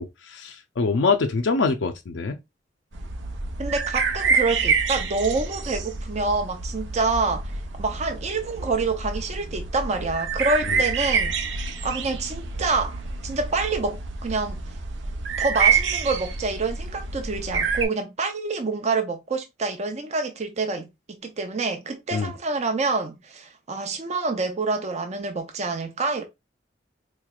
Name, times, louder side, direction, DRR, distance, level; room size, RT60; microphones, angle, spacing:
voice 1, 0.0-2.4 22.1-22.3, left 4 dB, 85° left, 0.5 m, -24 dB
sound 1, 2.9-17.8, right 5 dB, 80° right, 0.7 m, -27 dB
voice 2, 3.6-7.5 7.8-11.3 11.8-14.6 15.4-26.2, right 3 dB, 40° right, 0.6 m, -27 dB
4.0 x 3.1 x 2.3 m
head